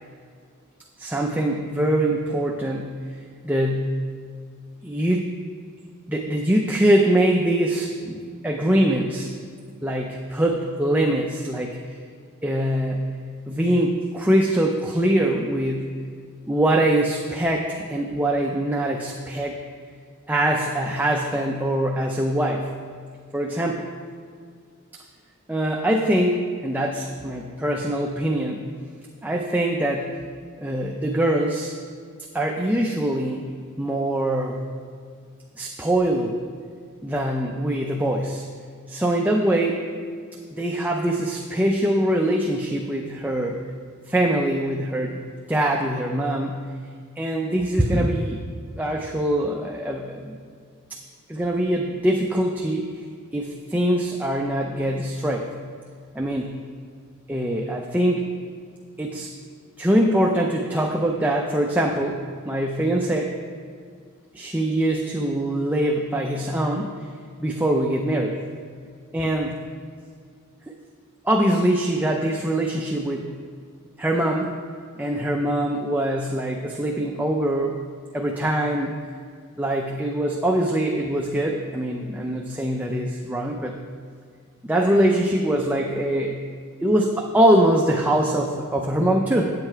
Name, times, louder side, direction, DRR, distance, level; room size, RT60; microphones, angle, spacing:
voice 1, 1.0-3.1 3.4-4.0 4.8-5.3 6.1-9.3 9.8-12.0 12.4-13.0 13.5-16.0 16.5-19.6 20.3-22.7 23.3-23.8 25.5-28.6 29.2-30.1 30.6-31.7 32.3-33.5 33.8-34.6 35.6-36.4 37.0-38.4 38.9-39.8 40.5-43.6 44.1-45.2 45.5-46.7 47.2-48.4 48.8-50.4 50.9-51.0 51.3-52.9 53.3-55.5 56.1-56.5 57.3-58.3 59.0-59.3 59.8-63.3 64.3-66.9 67.4-68.4 69.1-69.6 70.7-70.8 71.2-73.3 74.0-74.6 75.0-77.8 78.1-79.0 79.6-83.8 84.6-86.4 86.8-89.5, right 1 dB, 10° right, 0 dB, 0.5 m, -23 dB
9.1 x 7.7 x 4.5 m, 2.1 s
head